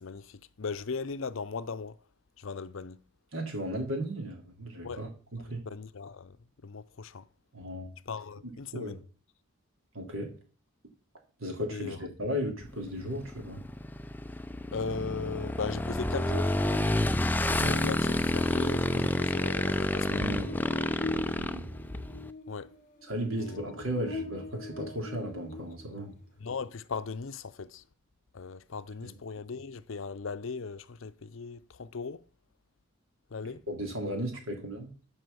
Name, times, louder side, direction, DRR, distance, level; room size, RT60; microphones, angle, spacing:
voice 1, 0.0-2.0 2.4-3.0 4.8-5.0 5.7-6.4 6.6-7.3 8.1-9.0 11.7-12.0 14.7-16.6 17.5-20.5 22.5-22.7 23.4-23.6 26.4-27.8 28.3-32.2 33.3-33.6, left 4 dB, 70° left, 0.6 m, -38 dB
voice 2, 3.3-5.7 7.5-7.9 8.4-9.0 9.9-10.3 11.4-13.6 17.6-18.0 20.1-20.6 21.0-21.7 23.0-26.2 29.0-29.1 33.4-34.9, equal, 75° right, 3.5 m, -36 dB
Motorcycle / Engine, 12.6-22.3, left 1 dB, 10° left, 0.4 m, -29 dB
Buzz, 16.7-26.2, left 3 dB, 35° left, 2.5 m, -44 dB
11.5 x 5.6 x 6.9 m
head